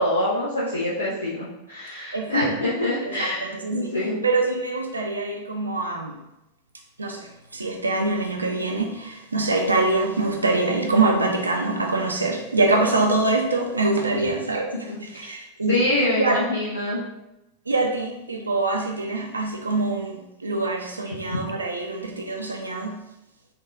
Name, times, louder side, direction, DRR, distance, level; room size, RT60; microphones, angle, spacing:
voice 1, 0.0-4.2 14.1-14.3 15.7-17.0 21.1-21.4, left 1 dB, 75° left, -7 dB, 0.6 m, -25 dB
voice 2, 2.1-2.5 3.0-3.9 4.2-6.2 7.0-15.8 16.2-16.4 17.7-23.0, right 2 dB, 80° right, 2 dB, 0.3 m, -24 dB
3.6 x 2.2 x 3.2 m, 0.92 s
figure-of-eight pair, 90°, 0 cm